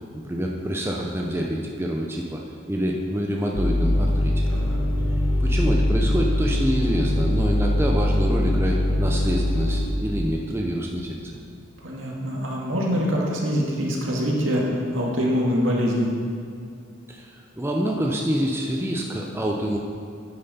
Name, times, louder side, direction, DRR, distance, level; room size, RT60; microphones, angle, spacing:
voice 1, 0.2-2.4 2.7-4.4 5.4-11.4 17.1-17.3 17.6-19.8, equal, 10° right, -1 dB, 0.6 m, -26 dB
sound 1, 3.6-9.9, left 1 dB, 25° left, 0.7 m, -22 dB
voice 2, 11.8-14.6 14.9-16.1, equal, 70° right, -3 dB, 1.9 m, -24 dB
9.4 x 8.9 x 4.2 m, 2.3 s
head